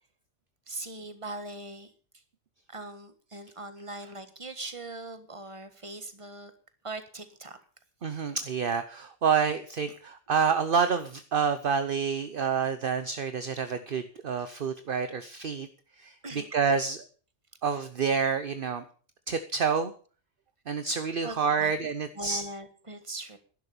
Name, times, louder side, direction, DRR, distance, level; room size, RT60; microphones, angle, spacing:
voice 1, 0.7-1.9 2.7-6.5 6.8-7.6 16.2-16.5 21.2-21.7 22.1-23.4, right 2 dB, 25° right, 10 dB, 1.6 m, -40 dB
voice 2, 8.0-15.7 16.0-16.1 16.5-17.0 17.6-18.8 19.3-19.9 20.7-22.4, right 6 dB, 50° right, 11 dB, 1.0 m, -28 dB
11.5 x 11.0 x 6.8 m, 0.41 s
omnidirectional pair, 1.2 m